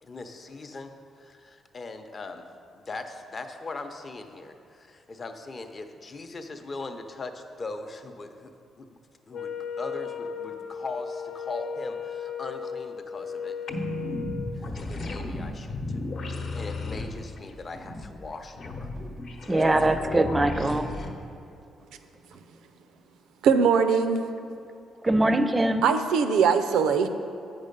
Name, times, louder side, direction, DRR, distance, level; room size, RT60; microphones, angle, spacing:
voice 1, 0.0-2.4 2.7-8.5 8.8-8.9 9.3-13.5 14.5-16.0 16.5-19.0, left 3 dB, 35° left, 6 dB, 0.6 m, -40 dB
Wind instrument woodwind instrument, 9.3-14.6, left 6 dB, 75° left, 0.6 m, -36 dB
sound 1, 13.7-21.1, left 2 dB, 55° left, 0.9 m, -34 dB
voice 2, 19.5-20.9 25.0-25.9, right 1 dB, 20° right, 10 dB, 0.4 m, -22 dB
voice 3, 23.4-24.3 25.8-27.1, right 6 dB, 85° right, 8 dB, 0.5 m, -21 dB
8.2 x 5.4 x 5.3 m, 2.6 s
cardioid pair, 90°, 0 cm